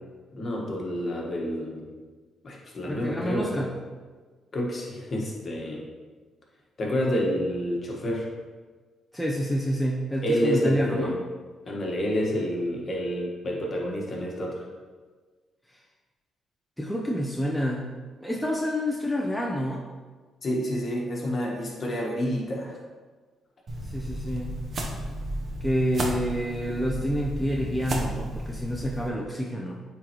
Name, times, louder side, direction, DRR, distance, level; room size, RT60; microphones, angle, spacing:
voice 1, 0.3-1.9 2.4-3.6 4.5-5.8 6.8-8.3 10.2-11.2 11.7-14.6 20.4-22.8, equal, 40° left, -2 dB, 1.5 m, -28 dB
voice 2, 2.8-3.7 9.1-11.1 16.8-17.9 18.2-19.8 23.9-24.5 25.6-29.8, equal, ahead, -2 dB, 0.7 m, -28 dB
sound 1, 23.7-29.1, right 1 dB, 50° right, 0.9 m, -33 dB
9.0 x 3.9 x 3.1 m, 1.4 s
cardioid pair, 90°, 0 cm